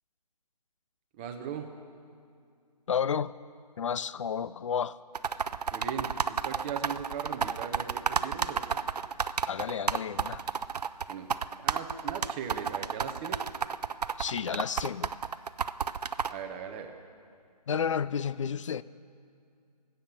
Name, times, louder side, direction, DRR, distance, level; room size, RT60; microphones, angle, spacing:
voice 1, 1.2-1.7 5.7-8.8 11.1-11.3 11.6-13.4 16.3-16.9, right 7 dB, 15° right, 0.7 m, -39 dB
voice 2, 2.9-3.3 3.8-5.0 9.5-10.4 14.2-15.1 17.7-18.8, left 7 dB, 50° left, 0.4 m, -31 dB
sound 1, 5.1-16.3, right 6 dB, 70° right, 0.5 m, -30 dB
19.0 x 7.9 x 7.2 m
figure-of-eight pair, 150°, 21 cm